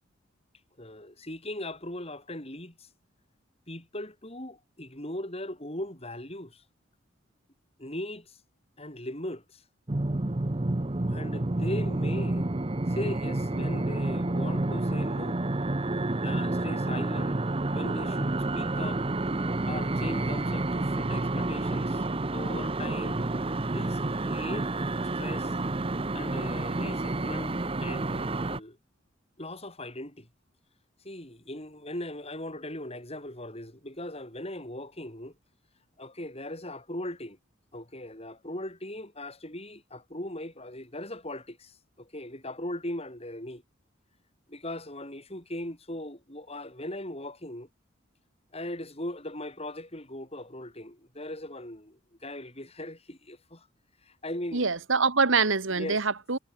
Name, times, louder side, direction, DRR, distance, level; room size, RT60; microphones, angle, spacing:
voice 1, 0.8-2.9 3.7-6.6 7.8-8.4 8.8-9.6 11.1-12.5 12.9-15.4 16.2-17.5 17.7-19.0 19.6-22.0 22.3-23.2 23.7-24.7 25.1-25.6 26.1-28.8 29.4-30.3 31.0-35.3 36.0-37.4 37.7-43.6 44.5-47.7 48.5-53.7 54.0-54.7 55.7-56.0, left 1 dB, 30° left, 7.5 m, -39 dB
sound 1, 9.9-28.6, right 2 dB, 25° right, 0.8 m, -29 dB
voice 2, 54.5-56.4, right 4 dB, 70° right, 1.6 m, -25 dB
head